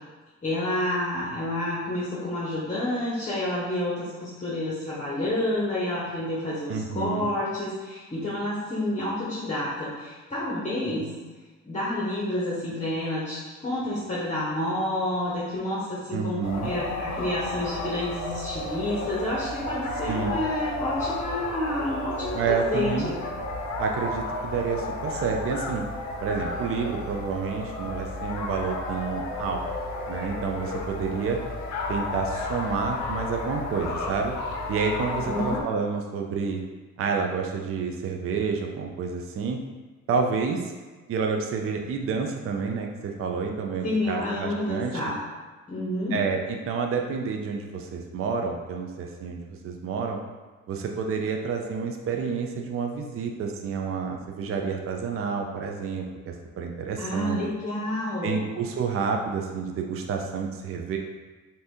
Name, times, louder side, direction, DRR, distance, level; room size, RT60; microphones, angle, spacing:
voice 1, 0.4-11.1 11.6-23.2 35.1-35.6 43.8-45.2 45.7-46.1 57.0-58.4, left 1 dB, 25° left, -8 dB, 0.8 m, -29 dB
voice 2, 6.7-7.3 16.1-16.7 20.1-20.4 22.3-23.1 23.8-25.8 26.2-29.6 30.1-31.4 31.9-34.3 34.7-36.6 37.0-39.6 40.1-40.7 41.1-44.9 46.1-50.2 50.7-57.4 58.2-61.0, right 5 dB, 45° right, 2 dB, 0.4 m, -29 dB
sound 1, 16.4-35.6, left 2 dB, 65° left, 0.6 m, -32 dB
2.7 x 2.6 x 3.5 m, 1.3 s
cardioid pair, 90°, 30 cm